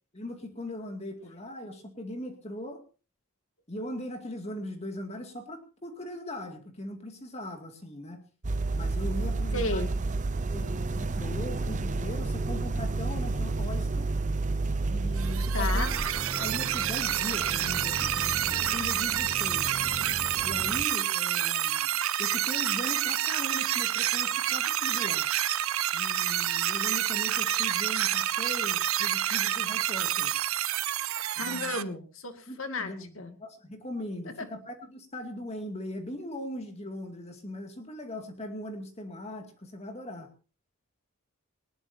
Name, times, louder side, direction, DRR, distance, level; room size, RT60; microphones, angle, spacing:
voice 1, 0.1-2.8 3.7-8.3 8.7-9.9 10.5-14.1 14.9-15.9 16.4-19.8 20.4-21.9 22.2-25.3 25.9-30.3 31.4-31.7 32.5-40.3, left 1 dB, 30° left, 4 dB, 2.3 m, -39 dB
sound 1, 8.4-20.8, right 3 dB, 35° right, 0.6 m, -31 dB
voice 2, 9.5-9.9 15.5-15.9 31.4-32.9 33.2-33.3 34.4-34.5, left 2 dB, 70° left, 7 dB, 2.3 m, -33 dB
sound 2, 15.2-31.8, right 11 dB, 75° right, 0.8 m, -28 dB
20.0 x 19.5 x 2.8 m, 0.35 s
head